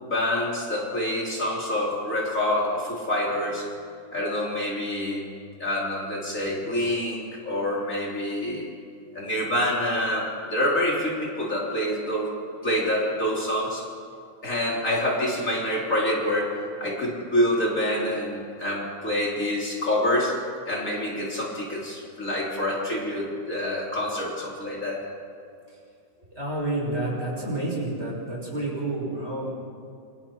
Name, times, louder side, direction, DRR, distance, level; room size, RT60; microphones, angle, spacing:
voice 1, 0.0-3.7 4.1-5.3 5.6-8.7 9.1-12.3 12.6-13.9 14.4-20.4 20.7-25.0, left 1 dB, 40° left, -4 dB, 3.7 m, -27 dB
voice 2, 26.4-29.5, right 2 dB, 35° right, -4 dB, 7.3 m, -29 dB
28.5 x 25.0 x 4.6 m, 2.4 s
omnidirectional pair, 2.1 m